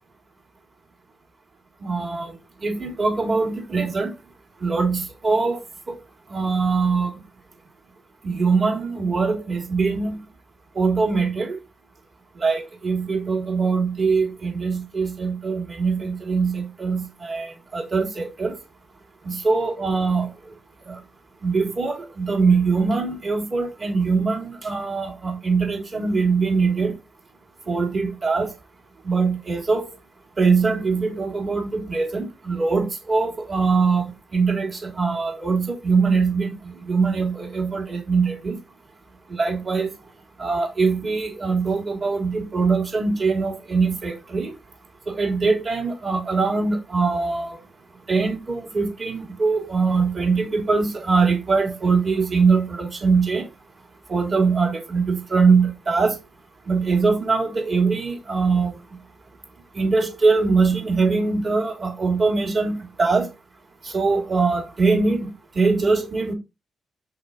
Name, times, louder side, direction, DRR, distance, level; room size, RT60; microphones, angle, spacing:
voice 1, 1.8-2.3 2.6-4.1 4.6-5.6 6.3-7.1 8.2-10.2 10.8-11.6 12.4-18.5 19.2-20.3 20.9-21.0 21.4-26.9 27.7-28.5 29.0-29.9 30.4-38.6 39.3-39.9 40.4-44.5 45.1-47.6 48.1-53.5 54.1-56.2 56.7-58.8 59.7-63.3 63.8-65.3 65.5-66.3, right 4 dB, 45° right, 3.1 m, -22 dB
5.9 x 5.1 x 4.1 m
cardioid pair, 85°, 0 cm